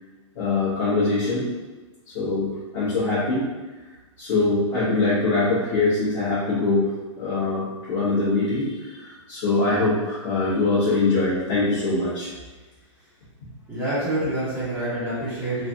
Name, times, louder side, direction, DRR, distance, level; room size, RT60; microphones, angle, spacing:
voice 1, 0.3-1.4 2.1-3.4 4.2-6.9 7.2-12.3, left 3 dB, 50° left, -11 dB, 1.2 m, -23 dB
voice 2, 13.7-15.7, right 1 dB, 5° right, -16 dB, 0.9 m, -27 dB
3.2 x 2.4 x 2.6 m, 1.2 s
hypercardioid pair, 145°, 17 cm